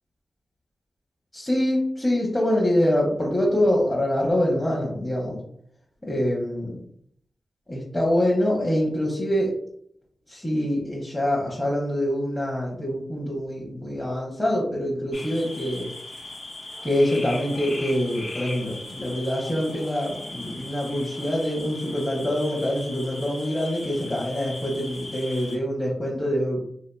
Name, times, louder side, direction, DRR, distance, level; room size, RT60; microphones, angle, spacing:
voice 1, 1.3-5.4 6.0-6.8 7.7-9.5 10.3-15.9 16.8-26.6, left 1 dB, 15° left, -3 dB, 0.8 m, -25 dB
sound 1, 15.1-25.6, left 2 dB, 60° left, 0.8 m, -38 dB
3.3 x 2.7 x 2.2 m, 0.68 s
cardioid pair, 75°, 0 cm